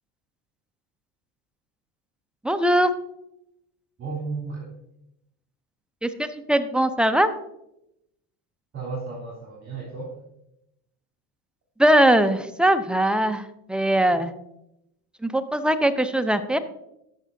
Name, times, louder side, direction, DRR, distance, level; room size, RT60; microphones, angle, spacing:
voice 1, 2.4-2.9 6.0-7.3 11.8-14.3 15.2-16.6, right 1 dB, ahead, 9 dB, 0.5 m, -21 dB
voice 2, 4.0-4.7 8.7-10.2, right 4 dB, 35° right, -5 dB, 3.4 m, -33 dB
13.5 x 6.1 x 2.7 m, 0.82 s
supercardioid pair, 90°, 47 cm